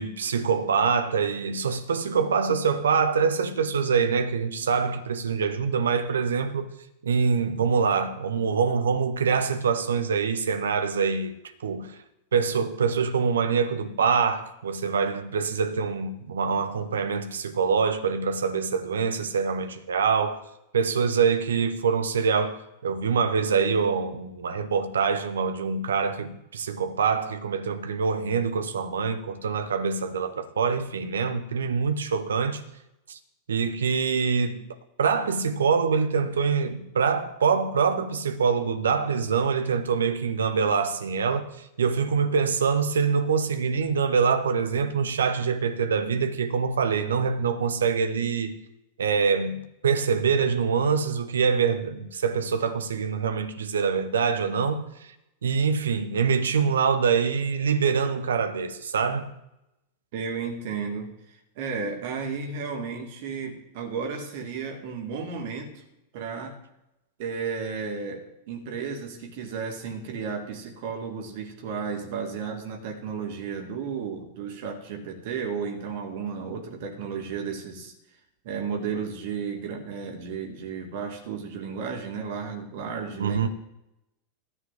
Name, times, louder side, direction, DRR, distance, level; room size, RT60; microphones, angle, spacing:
voice 1, 0.0-6.7 7.0-11.3 11.6-12.0 12.3-20.4 20.7-32.6 33.1-33.2 33.5-34.6 35.0-48.6 49.0-55.1 55.4-59.3 83.2-83.5, right 5 dB, 65° right, 1.0 m, -25 dB
voice 2, 60.1-65.7 66.1-66.6 67.2-77.9 78.4-83.5, right 5 dB, 50° right, 2.4 m, -33 dB
13.5 x 4.8 x 7.7 m
figure-of-eight pair, 90°, 0 cm